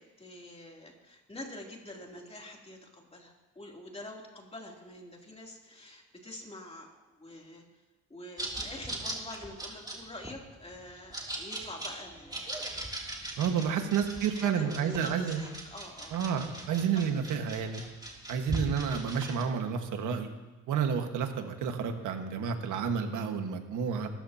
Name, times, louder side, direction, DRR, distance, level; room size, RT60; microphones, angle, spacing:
voice 1, 0.0-7.6 8.1-12.7 13.6-13.9 14.3-16.1 16.9-17.0, left 1 dB, 20° left, -1 dB, 3.1 m, -46 dB
sound 1, 8.4-19.4, right 1 dB, 15° right, 2.9 m, -40 dB
voice 2, 13.4-15.4 16.1-17.8 18.3-20.3 20.7-24.1, right 7 dB, 85° right, 5 dB, 1.6 m, -30 dB
23.0 x 13.5 x 2.9 m, 1.1 s
cardioid pair, 90°, 30 cm